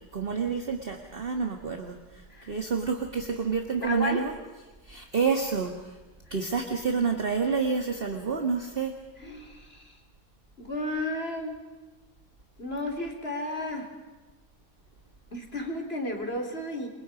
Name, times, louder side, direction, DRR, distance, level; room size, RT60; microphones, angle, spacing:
voice 1, 0.1-4.3 4.8-6.0 6.3-8.9, right 5 dB, 40° right, 4 dB, 1.9 m, -29 dB
voice 2, 3.8-4.2 9.2-10.0 10.6-11.6 12.6-13.9 15.3-16.9, left 1 dB, 40° left, 3 dB, 4.1 m, -33 dB
29.0 x 24.0 x 5.1 m, 1.2 s
omnidirectional pair, 1.6 m